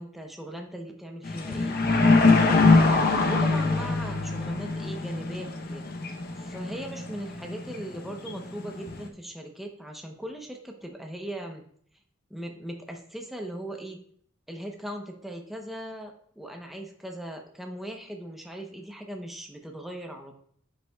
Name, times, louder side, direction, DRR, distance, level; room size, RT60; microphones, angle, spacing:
voice 1, 0.0-1.8 3.2-5.8 6.4-11.6 12.3-14.0 14.5-20.4, right 1 dB, ahead, 2 dB, 0.9 m, -39 dB
sound 1, 1.2-9.1, left 3 dB, 50° left, 0.9 m, -23 dB
9.8 x 6.7 x 2.4 m, 0.62 s
head